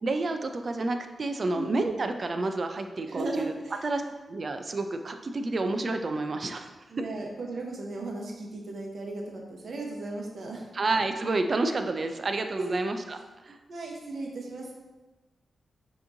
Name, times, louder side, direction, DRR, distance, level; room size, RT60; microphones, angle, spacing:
voice 1, 0.0-3.5 3.8-4.0 4.3-7.0 10.7-13.2 13.5-13.6, right 2 dB, 45° right, 7 dB, 0.3 m, -29 dB
voice 2, 1.5-1.9 3.1-3.8 6.9-10.7 12.6-12.8 13.7-14.7, right 2 dB, 65° right, -1 dB, 0.8 m, -36 dB
5.8 x 3.0 x 2.6 m, 1.1 s
wide cardioid pair, 110°, 0 cm